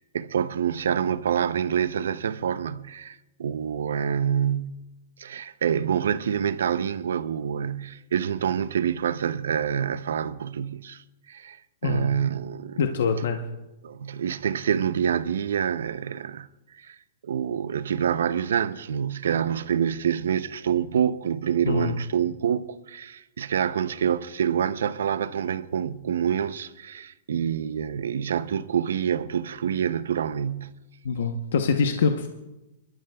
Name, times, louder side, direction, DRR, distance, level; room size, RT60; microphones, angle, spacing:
voice 1, 0.0-4.8 5.2-11.6 11.8-12.8 13.8-16.5 16.8-17.0 17.2-30.7, right 8 dB, 85° right, 0.6 m, -27 dB
voice 2, 12.8-13.4 21.6-22.0 31.0-32.3, left 5 dB, 75° left, 0.8 m, -24 dB
27.5 x 12.5 x 2.3 m
hypercardioid pair, 170°, 0 cm